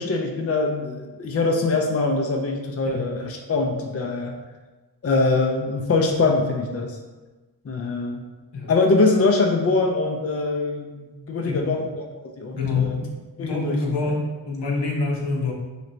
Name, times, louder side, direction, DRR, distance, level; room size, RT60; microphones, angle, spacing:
voice 1, 0.0-4.4 5.0-7.0 7.6-8.2 8.7-12.0 12.4-13.0 13.4-13.8, left 3 dB, 35° left, 2 dB, 0.5 m, -23 dB
voice 2, 11.4-11.8 12.5-15.5, left 3 dB, 75° left, -1 dB, 0.9 m, -26 dB
4.0 x 2.7 x 3.2 m, 1.2 s
cardioid pair, 60°, 42 cm